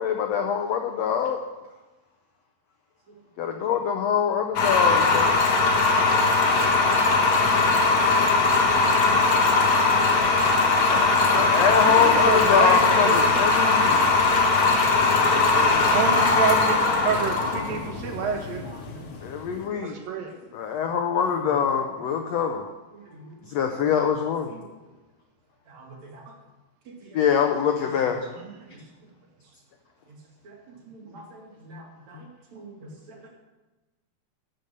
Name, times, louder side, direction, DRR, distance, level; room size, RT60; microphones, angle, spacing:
voice 1, 0.0-1.4 3.4-5.4 10.9-14.3 15.7-15.9 19.2-19.9 20.5-22.6 23.5-24.5 27.1-28.3, left 7 dB, 85° left, 4 dB, 1.4 m, -24 dB
sound 1, 4.6-19.5, left 3 dB, 60° left, 2.6 m, -20 dB
voice 2, 11.5-13.2 15.3-18.6 19.8-20.3, right 6 dB, 75° right, 4 dB, 3.2 m, -28 dB
voice 3, 22.9-23.3 24.5-24.6 25.7-26.2 27.1-27.2 28.7-28.8 30.4-30.6 30.9-31.4 32.5-33.2, right 2 dB, 55° right, 0 dB, 3.2 m, -45 dB
13.5 x 7.0 x 6.7 m, 1.1 s
omnidirectional pair, 4.1 m